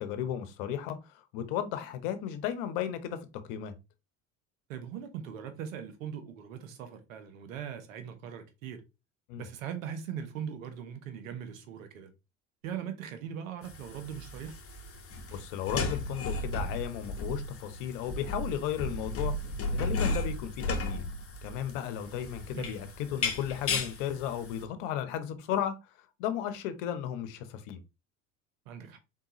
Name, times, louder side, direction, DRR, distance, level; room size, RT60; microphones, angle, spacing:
voice 1, 0.0-3.7 9.3-9.5 15.3-19.3 19.7-21.0 21.4-25.8 26.2-27.8, left 10 dB, 75° left, 1.0 m, -34 dB
voice 2, 4.7-8.8 9.4-12.1 12.6-14.5 22.5-22.9 28.7-29.0, right 8 dB, 90° right, 1.0 m, -40 dB
sound 1, 13.6-24.6, left 2 dB, 35° left, 1.3 m, -35 dB
4.4 x 3.8 x 3.0 m
hypercardioid pair, 75°, 39 cm